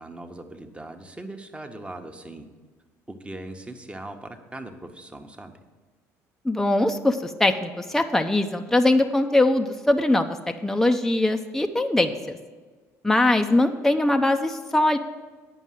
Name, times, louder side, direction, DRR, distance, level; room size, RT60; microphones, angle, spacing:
voice 1, 0.0-2.5 3.1-5.6, right 2 dB, 15° right, 5 dB, 1.1 m, -40 dB
voice 2, 6.4-10.3 10.6-12.4 13.0-15.0, left 2 dB, 5° left, 5 dB, 0.6 m, -21 dB
9.1 x 5.4 x 7.6 m, 1.4 s
hypercardioid pair, 70°, 8 cm